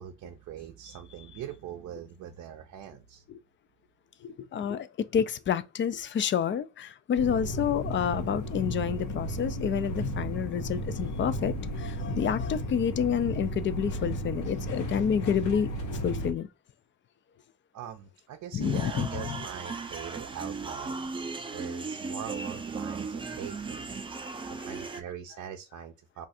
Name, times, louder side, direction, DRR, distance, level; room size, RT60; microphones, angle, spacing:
voice 1, 0.0-3.2 17.7-20.9 21.5-23.9 24.5-26.3, right 9 dB, 70° right, 0.5 m, -42 dB
voice 2, 4.2-16.5 18.5-19.1 24.6-24.7, left 8 dB, 40° left, 0.4 m, -29 dB
sound 1, 7.2-16.3, equal, 80° left, 0.9 m, -34 dB
sound 2, 18.6-25.0, right 4 dB, 15° right, 0.5 m, -36 dB
2.5 x 2.4 x 4.1 m
cardioid pair, 90°, 30 cm